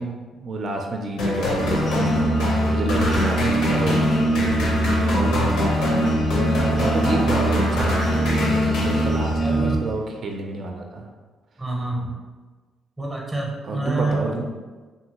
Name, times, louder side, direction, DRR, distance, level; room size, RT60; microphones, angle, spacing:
voice 1, 0.0-4.1 5.1-5.5 6.7-11.1 13.7-14.5, right 3 dB, 55° right, 2 dB, 0.3 m, -30 dB
sound 1, 1.2-9.6, left 2 dB, 90° left, 0.7 m, -24 dB
sound 2, 1.6-9.8, right 1 dB, 50° left, 0.4 m, -23 dB
voice 2, 9.4-9.9 11.6-12.2 13.0-14.5, right 2 dB, 10° right, -1 dB, 0.6 m, -27 dB
2.7 x 2.6 x 2.9 m, 1.3 s
cardioid pair, 90°, 0 cm